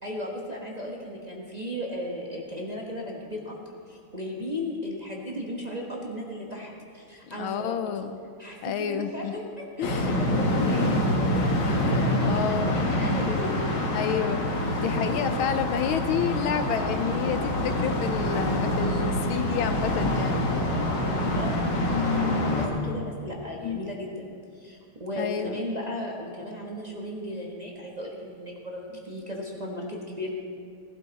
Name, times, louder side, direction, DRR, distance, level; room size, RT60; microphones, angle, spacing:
voice 1, 0.0-7.8 8.4-13.6 21.3-30.3, left 1 dB, 20° right, -3 dB, 1.2 m, -36 dB
voice 2, 7.3-8.2 8.6-9.3 9.8-10.2 11.6-12.9 13.9-14.5 14.8-20.4 23.6-23.9 25.2-25.6, left 8 dB, 75° left, 8 dB, 1.4 m, -30 dB
sound 1, 9.8-22.7, left 1 dB, 55° left, 2.1 m, -26 dB
18.5 x 12.5 x 4.1 m, 2.3 s
omnidirectional pair, 2.4 m